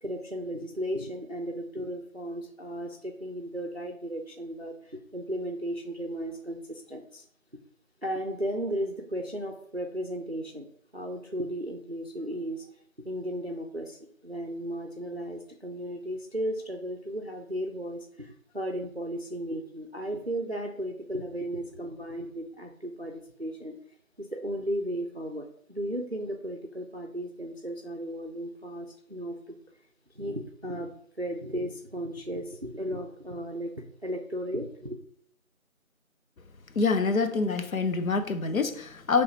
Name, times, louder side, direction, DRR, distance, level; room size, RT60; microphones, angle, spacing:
voice 1, 0.0-7.2 8.0-10.7 10.9-12.7 13.0-14.0 14.2-23.8 24.2-29.6 30.1-35.0, equal, 50° right, 2 dB, 0.5 m, -35 dB
voice 2, 36.8-39.2, left 4 dB, 75° left, 9 dB, 0.6 m, -26 dB
5.2 x 3.1 x 3.0 m, 0.65 s
figure-of-eight pair, 180°, 42 cm